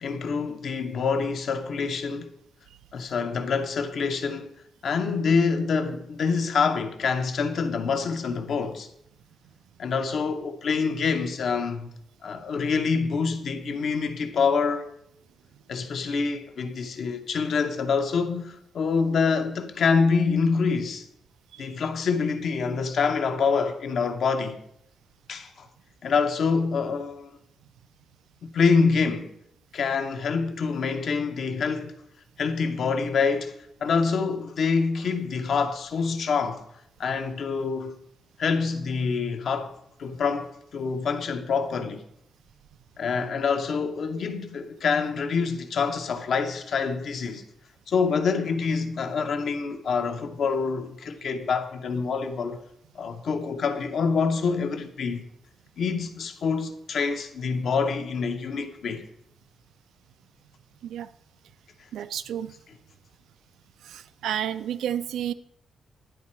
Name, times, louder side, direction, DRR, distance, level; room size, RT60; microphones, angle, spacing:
voice 1, 0.0-2.3 2.9-4.5 4.8-8.9 9.8-11.9 12.2-14.9 15.7-21.1 21.6-24.6 25.3-25.7 26.0-27.3 28.4-29.3 29.7-32.0 32.4-36.7 37.0-38.0 38.4-39.7 40.0-42.0 43.0-47.4 47.9-52.6 52.9-55.3 55.8-59.0, left 5 dB, 60° left, 0.8 m, -26 dB
voice 2, 61.9-62.5 63.8-65.3, right 10 dB, 90° right, 0.3 m, -31 dB
10.0 x 4.3 x 4.3 m
cardioid pair, 115°, 0 cm